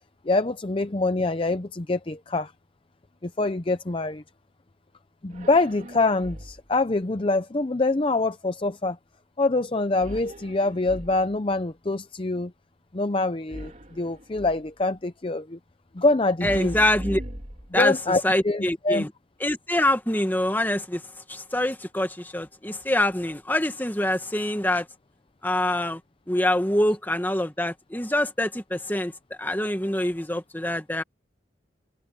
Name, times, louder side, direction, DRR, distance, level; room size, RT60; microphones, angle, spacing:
voice 1, 0.3-2.5 3.2-4.2 5.2-9.0 9.4-12.5 12.9-15.6 15.9-16.7 17.7-19.1, left 2 dB, 30° left, 0.6 m, -25 dB
sound 1, 5.3-6.8 10.0-11.5 13.5-14.7 16.4-18.1, equal, 40° right, 3.3 m, -39 dB
voice 2, 16.4-17.2 17.7-19.1 19.4-21.0 21.3-24.9 25.4-26.0 26.3-29.1 29.4-31.0, left 1 dB, 10° left, 1.7 m, -25 dB
head